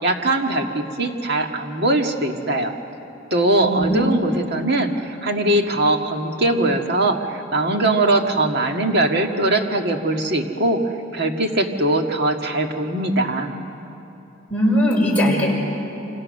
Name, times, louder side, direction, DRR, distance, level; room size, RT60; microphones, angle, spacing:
voice 1, 0.0-2.7 3.3-10.8 11.1-13.5, right 2 dB, 55° right, 3 dB, 1.9 m, -21 dB
voice 2, 3.6-4.0 14.5-15.5, equal, 5° left, -4 dB, 5.7 m, -19 dB
27.5 x 27.0 x 6.6 m, 2.9 s
head